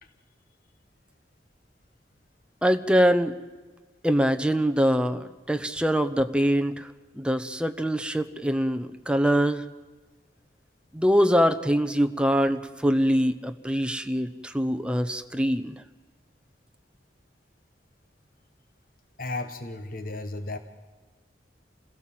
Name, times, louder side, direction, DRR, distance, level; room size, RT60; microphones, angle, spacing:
voice 1, 2.6-3.3 4.0-6.9 7.2-9.6 10.9-15.7, equal, 5° right, 8 dB, 0.9 m, -23 dB
voice 2, 19.2-20.6, left 2 dB, 50° left, 8 dB, 1.3 m, -34 dB
27.5 x 16.5 x 7.7 m, 1.3 s
head